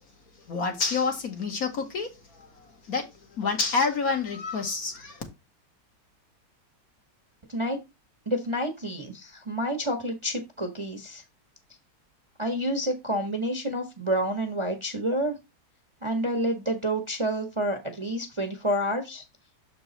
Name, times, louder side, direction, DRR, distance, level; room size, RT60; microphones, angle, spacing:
voice 1, 0.5-2.5 2.9-3.0 3.4-5.2, left 4 dB, 60° left, 1.7 m, -28 dB
voice 2, 8.3-11.2 12.4-15.3 16.0-19.2, equal, 20° right, 0.9 m, -29 dB
7.0 x 4.6 x 4.0 m
omnidirectional pair, 1.9 m